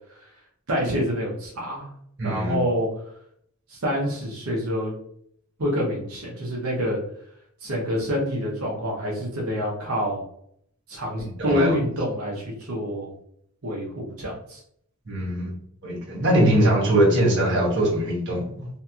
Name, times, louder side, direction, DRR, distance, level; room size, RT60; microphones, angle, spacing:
voice 1, 0.7-1.9 2.2-2.9 3.7-4.9 5.6-7.0 7.6-10.2 10.9-13.1 13.6-14.6, equal, 85° right, -3 dB, 0.8 m, -27 dB
voice 2, 2.2-2.6 11.2-11.7 15.1-15.5 15.8-18.7, right 1 dB, 55° right, -4 dB, 1.0 m, -22 dB
2.8 x 2.7 x 2.3 m, 0.67 s
head